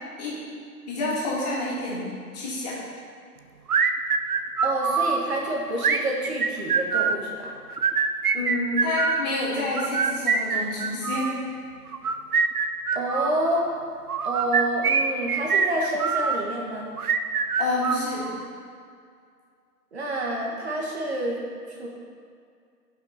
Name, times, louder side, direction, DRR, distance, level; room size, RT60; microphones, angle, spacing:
voice 1, 0.9-2.0 2.3-2.8 8.3-11.4 17.6-18.3, left 2 dB, 25° left, -7 dB, 2.7 m, -28 dB
sound 1, 3.7-5.2 5.8-7.2 7.7-9.3 9.8-11.3 11.9-13.4 14.1-16.4 17.0-18.4, right 5 dB, 65° right, 0.8 m, -24 dB
voice 2, 4.6-7.5 12.9-13.6 14.2-16.9 19.9-21.4 21.7-21.9, right 1 dB, 40° right, -1 dB, 1.6 m, -28 dB
16.0 x 5.8 x 4.2 m, 2.3 s
figure-of-eight pair, 150°, 48 cm